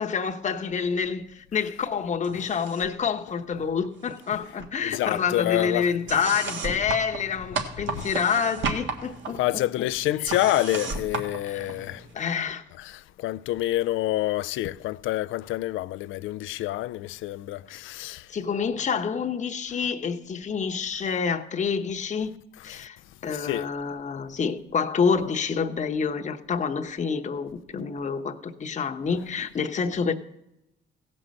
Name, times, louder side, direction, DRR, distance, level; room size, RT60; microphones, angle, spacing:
voice 1, 0.0-9.6 10.1-10.4 11.5-11.7 12.1-12.6 18.3-22.3 22.6-23.0 23.2-30.1, left 6 dB, 35° left, 0.9 m, -28 dB
sound 1, 2.2-3.0 3.3-4.3 4.6-12.1, right 4 dB, 70° right, 1.7 m, -35 dB
voice 2, 4.8-5.9 8.0-8.1 9.4-12.0 13.2-18.2 22.7-22.8 23.3-23.7, left 15 dB, 85° left, 0.4 m, -27 dB
16.0 x 5.4 x 7.6 m
cardioid pair, 90°, 20 cm